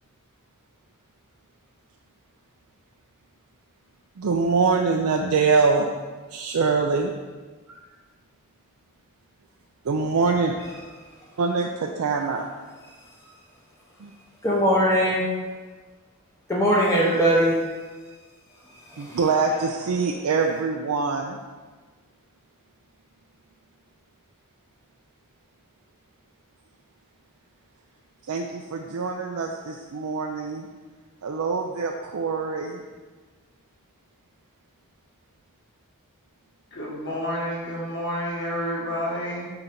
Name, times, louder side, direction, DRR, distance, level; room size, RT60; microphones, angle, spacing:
voice 1, 4.2-5.9 6.3-7.1 7.7-7.8 9.8-10.6 11.4-12.5 14.0-14.1 19.0-21.4 28.2-30.7 31.2-32.8, right 4 dB, 70° right, 1 dB, 0.4 m, -24 dB
voice 2, 14.4-15.3 16.5-17.6 18.9-19.2, equal, 15° left, -5 dB, 0.7 m, -20 dB
voice 3, 36.7-39.5, equal, 55° left, -4 dB, 1.7 m, -29 dB
4.9 x 4.0 x 5.8 m, 1.4 s
head